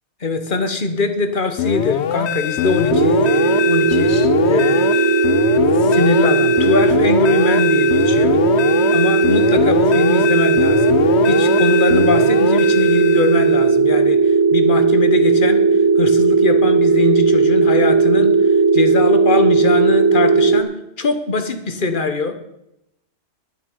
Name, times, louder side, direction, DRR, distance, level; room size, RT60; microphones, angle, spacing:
voice 1, 0.2-5.1 5.8-8.4 8.9-11.0 11.3-20.7 21.0-22.3, left 3 dB, 45° left, 8 dB, 1.3 m, -22 dB
sound 1, 1.6-13.7, left 10 dB, 65° left, 0.9 m, -21 dB
sound 2, 2.9-20.6, right 4 dB, 45° right, 0.3 m, -16 dB
12.0 x 9.3 x 5.5 m, 0.82 s
omnidirectional pair, 1.3 m